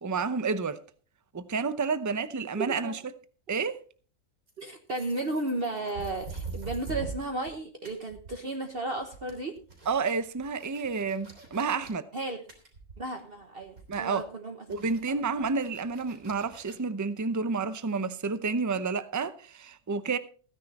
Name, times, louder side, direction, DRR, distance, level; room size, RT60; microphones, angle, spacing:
voice 1, 0.0-0.8 1.3-3.0 3.5-3.8 9.9-12.0 13.9-14.2 14.7-20.2, right 4 dB, 25° right, 0.4 m, -30 dB
voice 2, 2.6-2.9 4.6-9.6 12.1-12.4 13.0-15.2, right 2 dB, 45° right, 1.3 m, -34 dB
sound 1, 4.5-7.6 7.9-8.7 9.0-11.9 12.5-13.4 13.6-14.2 14.7-16.8, right 3 dB, 70° right, 4.1 m, -43 dB
15.5 x 10.0 x 4.2 m
omnidirectional pair, 1.5 m